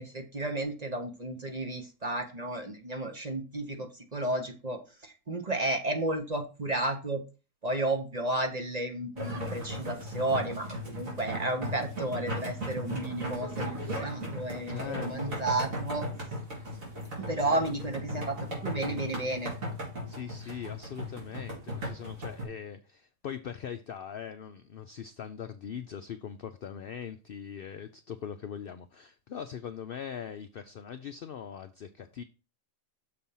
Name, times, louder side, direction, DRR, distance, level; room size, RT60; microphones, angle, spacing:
voice 1, 0.0-7.2 7.6-16.1 17.2-19.5, right 2 dB, 35° right, 0.9 m, -32 dB
Sonicsnaps-OM-FR-lebanc, 9.2-22.4, equal, 75° right, 3.3 m, -37 dB
voice 2, 14.7-15.4 17.3-17.7 20.1-32.2, left 8 dB, 65° left, 0.6 m, -41 dB
6.7 x 4.4 x 5.4 m
omnidirectional pair, 1.4 m